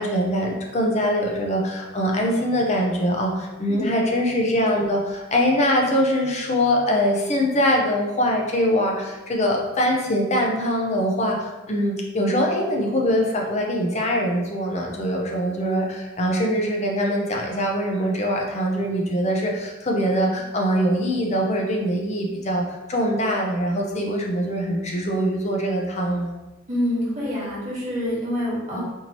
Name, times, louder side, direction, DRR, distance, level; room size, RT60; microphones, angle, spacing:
voice 1, 0.0-26.3 28.7-28.8, equal, 35° left, 0 dB, 0.5 m, -23 dB
voice 2, 26.7-28.8, left 1 dB, 35° right, -7 dB, 1.4 m, -26 dB
4.4 x 2.8 x 2.9 m, 1.1 s
head